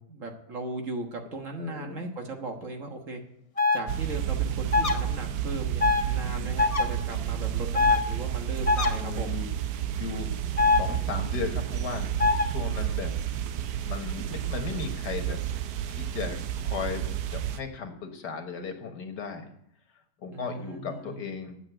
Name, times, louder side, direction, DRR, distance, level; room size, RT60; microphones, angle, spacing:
voice 1, 0.0-3.2 3.7-9.4 20.3-21.2, right 2 dB, 50° right, 3 dB, 1.8 m, -37 dB
voice 2, 1.6-2.1 6.1-6.6 8.9-9.5 10.0-10.3 10.6-13.1 13.8-19.5 20.2-21.6, left 6 dB, 85° left, 5 dB, 2.0 m, -36 dB
sound 1, 3.6-3.8 4.7-4.9 5.8-6.0 6.6-6.8 7.7-8.0 8.7-8.9 10.6-10.8 12.2-12.4, left 4 dB, 30° left, 0.7 m, -22 dB
sound 2, 3.9-17.6, right 10 dB, 80° right, 1.3 m, -31 dB
9.3 x 7.3 x 9.1 m, 0.72 s
omnidirectional pair, 1.8 m